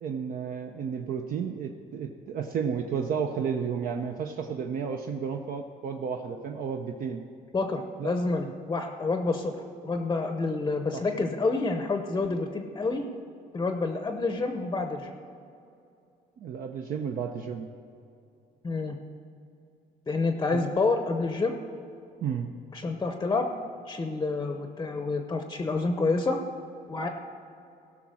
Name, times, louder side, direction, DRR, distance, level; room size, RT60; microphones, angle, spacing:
voice 1, 0.0-7.2 8.0-8.1 8.4-8.5 10.9-11.0 16.4-17.7 20.5-20.6 22.2-22.5, right 6 dB, 55° right, 3 dB, 0.7 m, -32 dB
voice 2, 7.5-9.6 9.8-13.0 13.5-15.1 18.6-19.0 20.1-21.6 22.7-23.5 23.9-26.4 26.9-27.1, left 3 dB, 20° left, 5 dB, 0.7 m, -28 dB
16.0 x 6.0 x 6.3 m, 2.6 s
cardioid pair, 110°, 17 cm